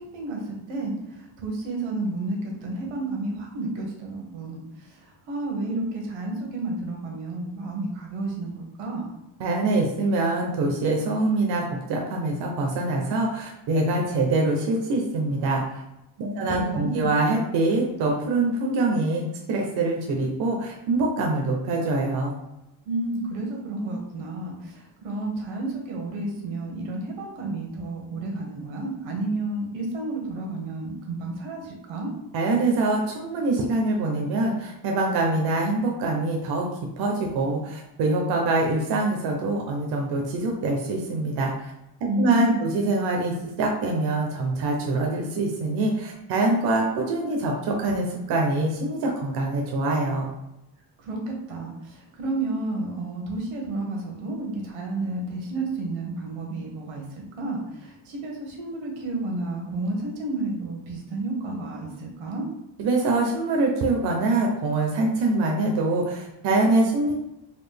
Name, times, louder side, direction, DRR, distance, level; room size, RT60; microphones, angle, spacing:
voice 1, 0.0-9.1 16.2-17.0 22.9-32.1 42.1-42.6 51.0-57.0 57.4-62.5, right 2 dB, 85° right, 0 dB, 1.3 m, -31 dB
voice 2, 9.4-15.8 16.2-22.4 32.3-36.7 37.0-41.7 42.2-50.3 62.8-67.1, right 2 dB, 55° right, 0 dB, 0.7 m, -24 dB
4.1 x 2.4 x 3.3 m, 0.89 s
cardioid pair, 170°, 46 cm